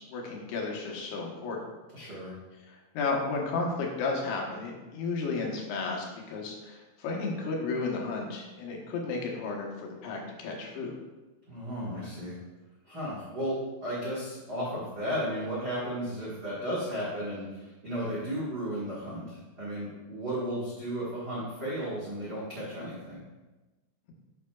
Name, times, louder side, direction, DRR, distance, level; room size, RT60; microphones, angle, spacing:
voice 1, 0.0-1.6 2.7-10.9, left 3 dB, 85° left, 0 dB, 3.1 m, -33 dB
voice 2, 1.9-2.4 11.5-12.3 12.8-23.2, equal, 70° right, -8 dB, 0.9 m, -34 dB
9.5 x 6.4 x 2.3 m, 1.1 s
omnidirectional pair, 4.5 m